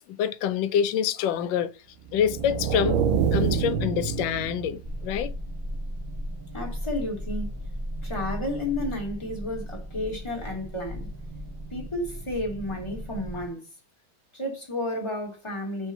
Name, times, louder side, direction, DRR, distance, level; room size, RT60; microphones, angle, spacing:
voice 1, 0.0-1.7 2.1-3.0 3.3-5.3, left 9 dB, 70° left, 1.3 m, -26 dB
sound 1, 2.1-5.0, right 7 dB, 80° right, 1.5 m, -26 dB
sound 2, 4.8-13.5, equal, 25° right, 0.4 m, -36 dB
voice 2, 6.5-7.5 8.0-11.1 11.7-13.6 14.3-15.9, left 1 dB, 15° left, 2.1 m, -32 dB
5.0 x 3.6 x 5.5 m
omnidirectional pair, 2.4 m